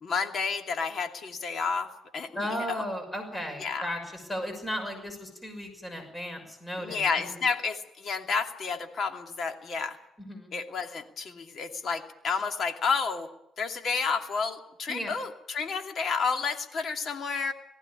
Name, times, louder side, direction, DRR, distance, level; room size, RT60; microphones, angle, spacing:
voice 1, 0.0-1.9 2.1-2.8 3.6-3.9 6.8-10.0 10.5-13.3 13.6-17.5, left 5 dB, 55° left, 5 dB, 2.6 m, -30 dB
voice 2, 2.3-7.0 10.2-10.5 14.9-15.2, equal, 15° left, 5 dB, 6.1 m, -35 dB
19.0 x 15.5 x 9.9 m, 0.82 s
cardioid pair, 90°, 0 cm